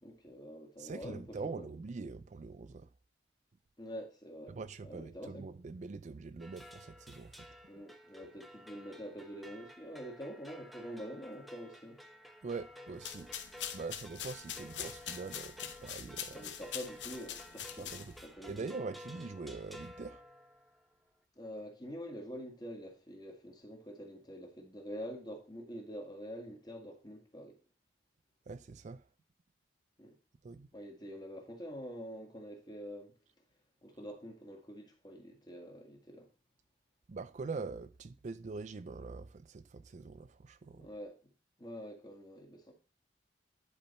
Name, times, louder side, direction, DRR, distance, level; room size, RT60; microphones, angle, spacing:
voice 1, 0.0-1.7 3.8-5.4 7.7-12.0 14.5-14.7 16.3-17.9 18.2-18.6 21.4-27.6 30.0-30.2 30.7-33.1 33.8-36.3 40.8-41.3 41.6-42.7, equal, 20° left, 2.1 m, -46 dB
voice 2, 0.8-2.9 4.5-7.5 12.4-13.3 13.7-16.5 17.8-18.2 18.5-20.2 28.5-29.0 30.4-30.7 37.1-40.9, right 4 dB, 40° right, 0.4 m, -43 dB
sound 1, 6.4-20.8, equal, ahead, 0.9 m, -53 dB
sound 2, 12.9-18.3, left 9 dB, 75° left, 1.1 m, -44 dB
10.5 x 4.9 x 4.3 m
head